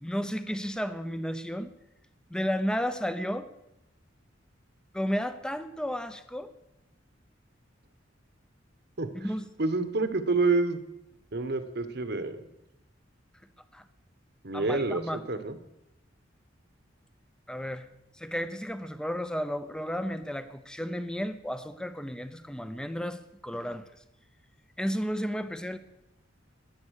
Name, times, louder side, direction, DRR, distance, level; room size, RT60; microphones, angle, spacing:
voice 1, 0.0-1.7 2.3-3.5 4.9-6.5 9.1-9.4 13.7-13.8 14.5-15.2 17.5-17.9 18.2-23.9 24.8-25.8, equal, 5° left, 11 dB, 0.8 m, -33 dB
voice 2, 9.6-10.8 11.3-12.4 14.4-15.6, right 3 dB, 60° right, 10 dB, 1.3 m, -28 dB
20.5 x 8.5 x 6.6 m, 0.87 s
head